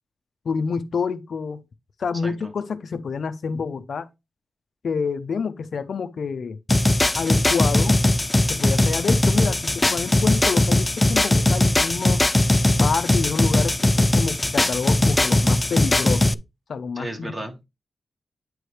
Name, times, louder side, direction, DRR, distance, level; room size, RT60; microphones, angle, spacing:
voice 1, 0.4-1.6 2.0-4.1 4.8-6.6 7.2-8.0 8.5-12.3 12.8-16.3 16.7-17.3, left 5 dB, 70° left, 0.6 m, -28 dB
sound 1, 6.7-16.3, left 1 dB, 20° left, 0.4 m, -19 dB
voice 2, 17.0-17.6, right 1 dB, 25° right, 1.9 m, -34 dB
9.2 x 4.7 x 3.2 m
wide cardioid pair, 95°, 0 cm